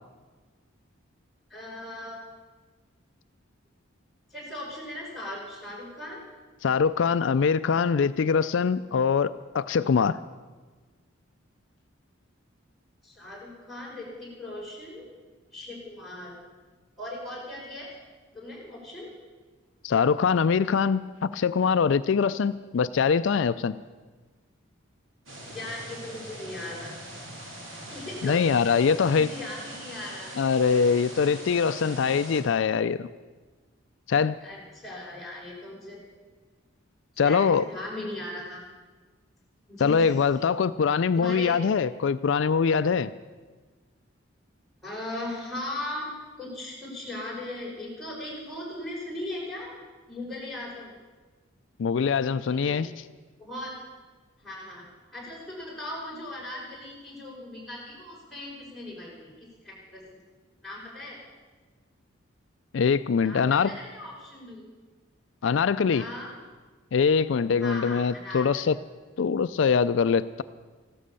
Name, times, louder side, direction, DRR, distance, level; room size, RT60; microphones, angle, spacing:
voice 1, 1.5-2.2 4.3-6.2 13.0-15.1 15.5-16.3 17.0-17.9 18.3-19.1 25.5-27.0 27.9-28.6 28.9-30.3 34.4-36.0 37.2-38.6 39.7-40.4 41.2-41.5 44.8-46.1 46.4-49.8 50.1-50.9 52.3-52.8 53.4-53.7 54.4-54.9 55.1-60.2 60.6-61.2 63.2-64.6 65.9-66.3 67.6-68.5, left 1 dB, ahead, -5 dB, 5.1 m, -38 dB
voice 2, 6.6-10.2 19.8-23.8 28.2-29.3 30.4-33.1 34.1-34.4 37.2-37.6 39.8-43.1 51.8-52.9 62.7-63.7 65.4-66.0 66.9-68.7 69.2-70.4, left 6 dB, 70° left, 13 dB, 0.4 m, -23 dB
sound 1, 25.3-32.4, right 1 dB, 80° right, 3.8 m, -42 dB
15.0 x 12.5 x 6.9 m, 1.4 s
head